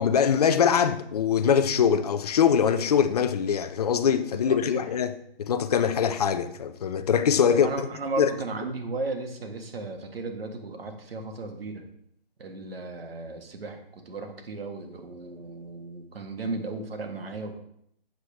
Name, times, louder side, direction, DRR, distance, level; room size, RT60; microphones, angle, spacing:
voice 1, 0.0-7.9 8.2-8.3, left 7 dB, 40° left, 0.6 m, -23 dB
voice 2, 4.4-4.9 7.5-11.9 12.4-17.6, right 3 dB, 75° right, 1.6 m, -35 dB
8.0 x 6.7 x 3.5 m
hypercardioid pair, 150°, 30 cm